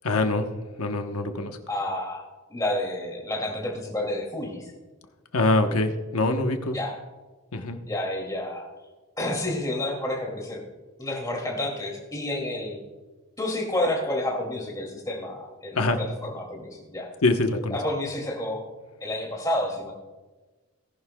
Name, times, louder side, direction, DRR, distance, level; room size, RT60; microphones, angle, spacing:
voice 1, 0.0-0.5 0.8-1.6 5.3-6.8 7.5-7.8 15.8-16.0 17.2-17.8, left 2 dB, 80° left, 6 dB, 1.0 m, -24 dB
voice 2, 1.7-2.2 2.5-4.7 6.7-6.9 7.8-8.7 9.2-10.6 11.0-12.8 13.4-17.1 17.7-18.6 19.0-19.9, left 1 dB, 15° left, -1 dB, 2.4 m, -30 dB
18.5 x 11.0 x 2.3 m, 1.2 s
head